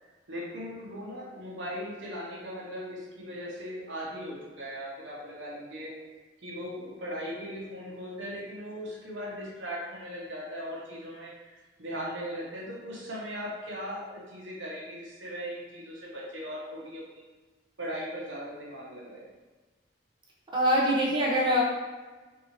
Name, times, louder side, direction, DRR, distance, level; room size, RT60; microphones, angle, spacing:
voice 1, 0.3-5.9 6.4-11.5 11.8-17.2 17.8-19.2, equal, 70° right, -5 dB, 1.1 m, -38 dB
voice 2, 20.5-21.6, equal, 25° right, -4 dB, 0.7 m, -24 dB
4.3 x 2.7 x 2.9 m, 1.3 s
head